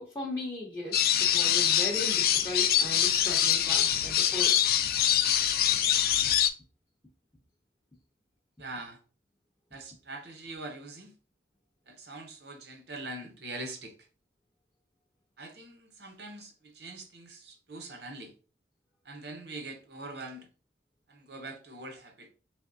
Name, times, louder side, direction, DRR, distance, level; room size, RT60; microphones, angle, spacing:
voice 1, 0.0-4.7, left 1 dB, 15° left, 0.6 m, -37 dB
sound 1, 0.9-6.5, left 10 dB, 55° left, 0.3 m, -24 dB
voice 2, 8.6-9.0 9.7-11.1 11.9-13.9 15.4-18.3 19.0-20.5 21.1-22.3, right 2 dB, 65° right, 0.7 m, -43 dB
3.4 x 3.1 x 2.6 m
head